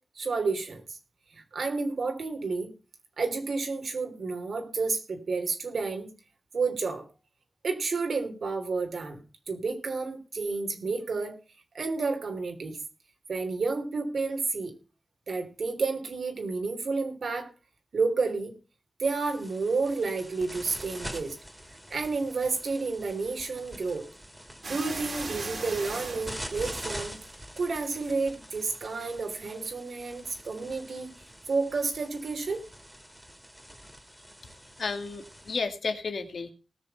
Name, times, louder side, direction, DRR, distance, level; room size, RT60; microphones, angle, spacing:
voice 1, 0.1-1.0 1.3-2.7 3.2-6.1 6.5-7.0 7.6-9.2 9.5-11.3 11.7-12.8 13.3-14.7 15.3-17.5 17.9-18.5 19.0-21.4 21.9-24.1 24.7-27.1 27.6-31.1 31.5-32.6, right 4 dB, 85° right, 5 dB, 3.3 m, -30 dB
sound 1, 19.1-35.6, equal, 10° right, 3.1 m, -45 dB
sound 2, 24.6-27.5 27.9-28.3 29.0-29.1 29.5-29.6, right 3 dB, 65° right, 3.0 m, -39 dB
voice 2, 34.8-36.5, left 4 dB, 80° left, 7 dB, 1.9 m, -32 dB
19.0 x 6.7 x 5.6 m, 0.34 s
wide cardioid pair, 100°, 0 cm